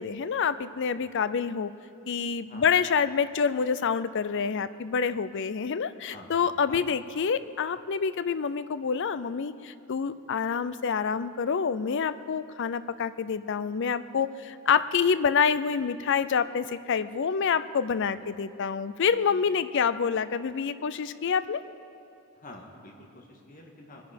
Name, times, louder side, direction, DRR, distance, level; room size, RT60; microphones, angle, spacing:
voice 1, 0.0-1.7 2.1-21.6, left 6 dB, 55° left, 14 dB, 0.5 m, -27 dB
voice 2, 22.3-24.1, left 2 dB, 40° left, 1 dB, 1.8 m, -47 dB
22.5 x 10.0 x 5.2 m, 2.7 s
head